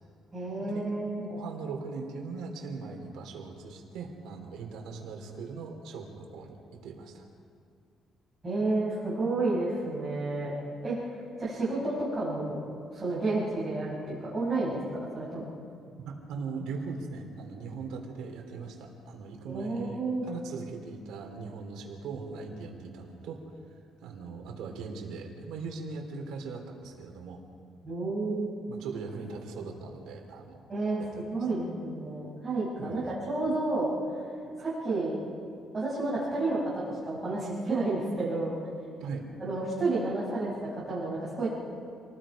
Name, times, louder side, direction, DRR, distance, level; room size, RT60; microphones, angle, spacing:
voice 1, 0.3-1.3 8.4-10.5 10.8-11.0 11.4-12.6 12.9-15.4 19.5-20.2 27.8-28.7 30.7-31.0 31.3-33.9 34.6-35.2 35.7-38.6 39.4-41.5, right 2 dB, 20° right, -9 dB, 5.3 m, -30 dB
voice 2, 1.3-7.2 16.1-20.0 20.3-23.4 24.0-27.4 28.7-30.6 31.0-31.3 32.8-33.0 39.0-39.2, right 4 dB, 85° right, 2 dB, 3.5 m, -40 dB
27.5 x 19.5 x 5.1 m, 2.3 s
cardioid pair, 170°, 0 cm